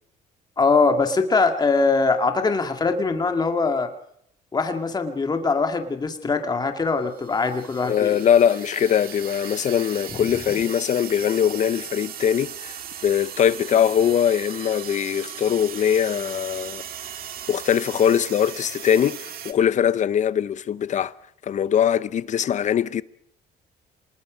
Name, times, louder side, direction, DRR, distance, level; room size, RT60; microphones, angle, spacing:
voice 1, 0.6-3.9 4.5-8.2, left 4 dB, 25° left, 2.0 m, -22 dB
sound 1, 7.1-19.5, right 10 dB, 60° right, 1.9 m, -37 dB
voice 2, 7.8-16.8 17.5-21.1 21.4-23.0, left 9 dB, 45° left, 0.8 m, -21 dB
26.0 x 20.0 x 5.1 m
cardioid pair, 110°, 17 cm